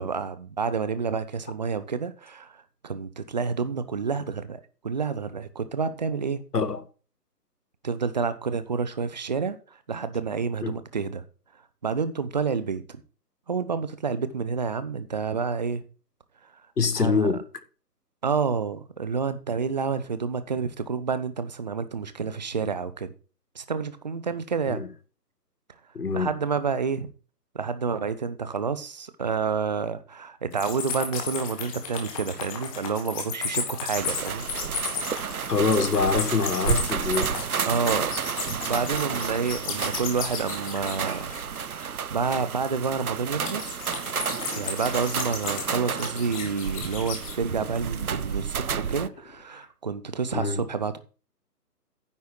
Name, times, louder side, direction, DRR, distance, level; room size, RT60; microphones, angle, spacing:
voice 1, 0.0-6.4 7.8-9.6 9.9-11.2 11.8-12.8 13.5-15.8 17.0-17.3 18.2-23.1 23.5-24.8 26.1-27.1 27.5-34.5 37.7-38.1 38.7-43.8 44.6-51.0, right 5 dB, 25° right, 0.8 m, -29 dB
voice 2, 6.5-6.8 10.6-10.7 16.8-17.5 24.7-24.9 25.9-26.4 35.5-37.4 50.3-50.6, left 4 dB, 70° left, 1.5 m, -25 dB
sound 1, 30.5-41.8 43.4-47.4, left 6 dB, 20° left, 2.3 m, -34 dB
sound 2, 34.0-49.1, right 7 dB, 60° right, 0.8 m, -31 dB
Wild animals, 44.2-46.7 47.2-49.7, left 3 dB, 50° left, 4.0 m, -48 dB
9.9 x 8.0 x 4.5 m
figure-of-eight pair, 140°, 49 cm